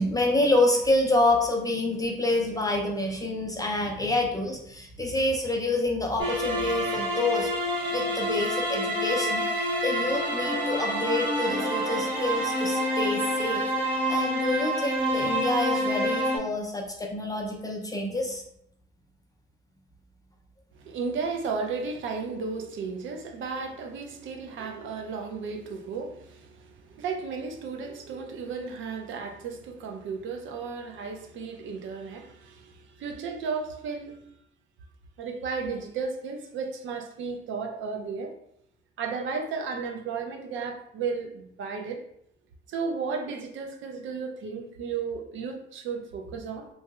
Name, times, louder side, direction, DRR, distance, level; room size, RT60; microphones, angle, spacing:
voice 1, 0.0-7.5 7.9-13.7 14.1-18.4, left 2 dB, 20° left, 0 dB, 0.4 m, -27 dB
sound 1, 6.2-16.4, equal, 25° right, 1.1 m, -27 dB
voice 2, 20.7-34.2 35.2-38.3 39.0-42.0 42.7-46.7, right 5 dB, 75° right, 4 dB, 0.5 m, -34 dB
3.0 x 2.7 x 2.3 m, 0.74 s
cardioid pair, 90°, 20 cm